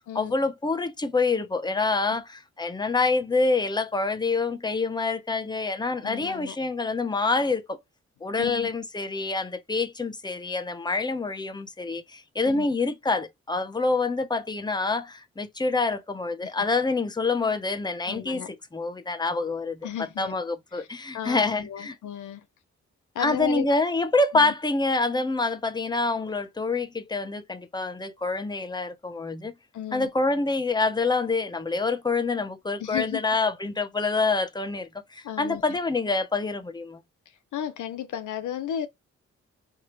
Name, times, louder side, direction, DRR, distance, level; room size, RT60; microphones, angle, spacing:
voice 1, 0.1-2.2 2.6-7.8 8.2-19.8 20.2-21.9 23.2-29.5 29.9-37.0, left 3 dB, 15° left, 0.8 m, -26 dB
voice 2, 6.0-6.6 8.4-8.7 12.4-12.7 16.4-16.5 18.1-18.5 19.8-20.3 20.7-20.9 21.1-22.5 23.1-23.7 24.3-24.5 29.7-30.1 32.8-33.2 35.2-35.8 37.5-38.9, left 10 dB, 85° left, 0.8 m, -34 dB
4.6 x 2.9 x 3.1 m
cardioid pair, 55°, 29 cm